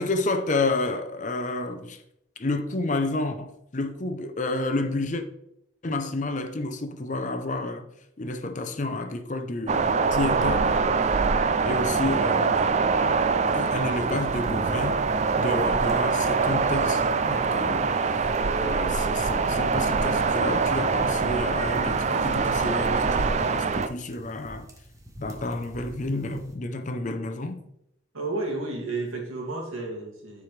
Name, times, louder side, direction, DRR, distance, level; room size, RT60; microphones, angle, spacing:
voice 1, 0.0-2.0 2.4-5.2 5.8-7.9 8.2-10.9 11.4-12.7 13.5-15.0 15.4-17.9 18.5-24.7 25.2-27.6, left 2 dB, 35° left, 0.6 m, -30 dB
sound 1, 9.7-23.9, right 4 dB, 35° right, 0.3 m, -24 dB
sound 2, 14.3-26.5, equal, 15° right, 1.0 m, -43 dB
voice 2, 28.1-30.4, right 2 dB, 85° right, 2.3 m, -32 dB
10.5 x 4.8 x 3.3 m
head